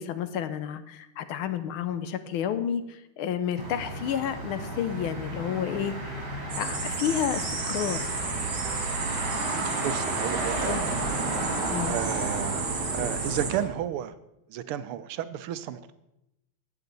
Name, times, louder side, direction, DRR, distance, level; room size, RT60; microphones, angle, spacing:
voice 1, 0.0-6.3 6.6-8.1 10.6-10.8 11.7-12.0, left 9 dB, 75° left, 12 dB, 1.6 m, -31 dB
Motor vehicle (road), 3.6-13.7, right 2 dB, 65° right, 3.5 m, -32 dB
sound 1, 6.5-13.5, right 4 dB, 45° right, 2.1 m, -33 dB
voice 2, 9.6-10.8 11.9-12.6 12.9-14.1 14.5-15.9, right 11 dB, 85° right, 13 dB, 1.6 m, -32 dB
13.5 x 8.6 x 4.0 m, 0.88 s
omnidirectional pair, 2.4 m